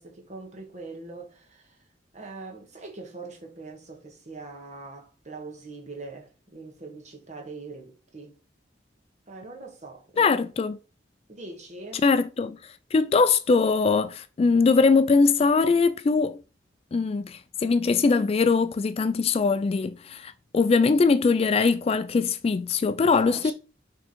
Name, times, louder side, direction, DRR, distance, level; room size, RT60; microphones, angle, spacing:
voice 1, 0.0-1.8 2.1-8.4 9.3-10.5 11.3-12.0 20.9-21.1 23.2-23.5, right 3 dB, 40° right, 1.5 m, -42 dB
voice 2, 10.2-10.8 12.0-12.6 12.9-16.4 16.9-23.5, left 4 dB, 35° left, 0.3 m, -22 dB
6.1 x 3.6 x 4.3 m
head